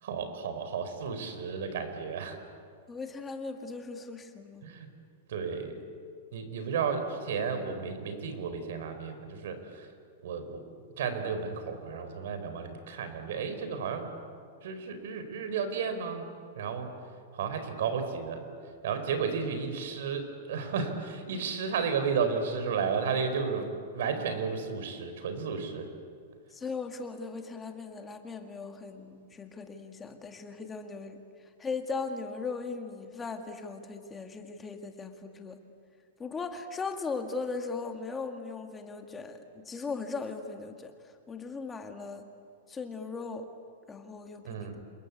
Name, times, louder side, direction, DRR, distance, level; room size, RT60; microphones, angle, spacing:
voice 1, 0.0-2.4 4.6-4.9 5.3-5.8 6.3-9.9 10.2-10.6 11.0-14.1 14.6-16.9 17.3-18.5 18.8-25.9 44.4-44.8, right 5 dB, 70° right, 8 dB, 4.5 m, -33 dB
voice 2, 2.9-4.7 26.5-35.6 36.2-42.2 42.7-43.5 43.9-44.8, left 4 dB, 10° left, 5 dB, 1.9 m, -38 dB
28.0 x 22.0 x 8.6 m, 2.2 s
supercardioid pair, 160°, 0 cm